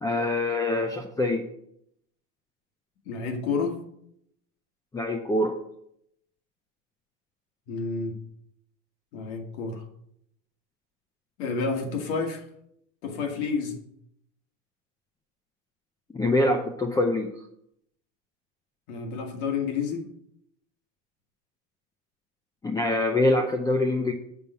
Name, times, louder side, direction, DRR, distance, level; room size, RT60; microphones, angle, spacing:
voice 1, 0.0-1.5 4.9-5.5 16.1-17.3 22.6-24.1, left 2 dB, 10° left, 4 dB, 0.6 m, -24 dB
voice 2, 3.1-3.8 7.7-8.2 9.1-9.9 11.4-12.5 13.0-13.8 18.9-20.1, left 5 dB, 70° left, 3 dB, 2.2 m, -30 dB
7.1 x 5.9 x 6.7 m, 0.73 s
supercardioid pair, 140°, 36 cm